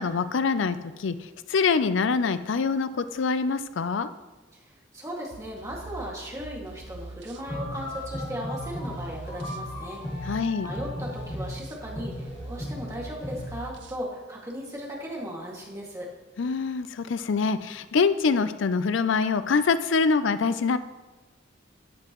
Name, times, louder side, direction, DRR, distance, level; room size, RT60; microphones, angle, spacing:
voice 1, 0.0-4.1 10.3-10.7 16.4-20.8, left 5 dB, 75° left, 13 dB, 0.5 m, -25 dB
voice 2, 4.5-16.1, equal, 15° right, -3 dB, 2.1 m, -37 dB
sound 1, 5.3-14.0, right 3 dB, 65° right, 0.6 m, -43 dB
sound 2, 7.4-13.5, left 1 dB, 25° left, 2.3 m, -36 dB
13.5 x 9.7 x 3.1 m, 1.2 s
head